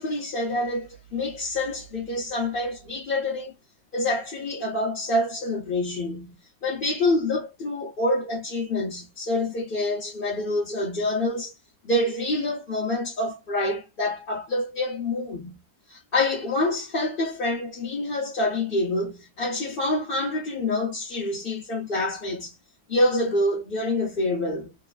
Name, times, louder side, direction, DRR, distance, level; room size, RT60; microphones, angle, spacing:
voice 1, 0.0-3.5 3.9-6.3 6.6-11.5 11.8-15.6 15.9-22.5 22.9-24.7, left 2 dB, 40° left, 0.9 m, -27 dB
3.3 x 2.2 x 2.3 m
omnidirectional pair, 2.0 m